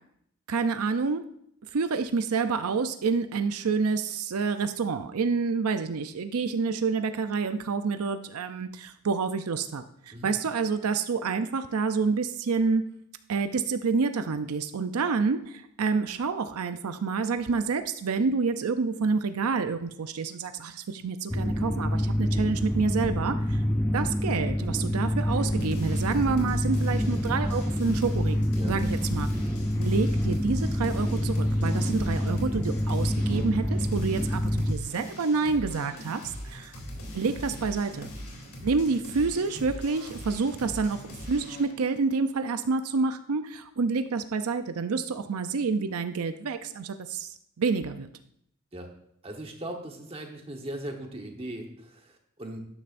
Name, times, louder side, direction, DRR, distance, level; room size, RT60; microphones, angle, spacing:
voice 1, 0.5-1.2 1.6-12.8 13.3-23.6 23.9-29.3 29.8-36.7 37.1-38.1 38.6-41.0 41.3-48.1, right 4 dB, 85° right, 9 dB, 0.5 m, -28 dB
sound 1, 21.3-34.7, equal, 10° left, 0.4 m, -27 dB
sound 2, 25.2-41.7, equal, 90° left, 3.2 m, -41 dB
voice 2, 49.2-52.6, right 1 dB, 25° right, 2 dB, 1.2 m, -39 dB
12.5 x 9.9 x 2.6 m, 0.72 s
head